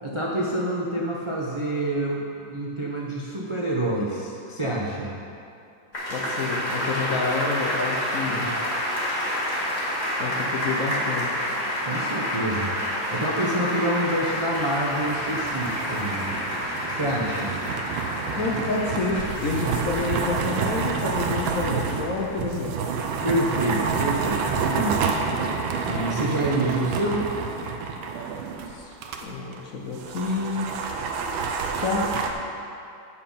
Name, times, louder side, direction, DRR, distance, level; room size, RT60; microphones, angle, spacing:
voice 1, 0.0-5.1 8.2-8.5 11.8-16.3 16.9-17.6 23.2-25.1 25.9-27.3, right 1 dB, 45° right, -4 dB, 0.3 m, -27 dB
sound 1, 5.9-22.5 22.9-23.0, equal, 20° left, 2.3 m, -29 dB
voice 2, 6.1-8.5 10.2-11.4 18.3-22.9 28.7-29.0 29.2-30.7 31.7-32.1, left 3 dB, 55° left, -1 dB, 1.0 m, -29 dB
sound 2, 14.1-29.2 29.5-29.6 29.9-32.3, right 5 dB, 85° right, 1.5 m, -29 dB
8.8 x 6.7 x 5.6 m, 2.6 s
omnidirectional pair, 2.1 m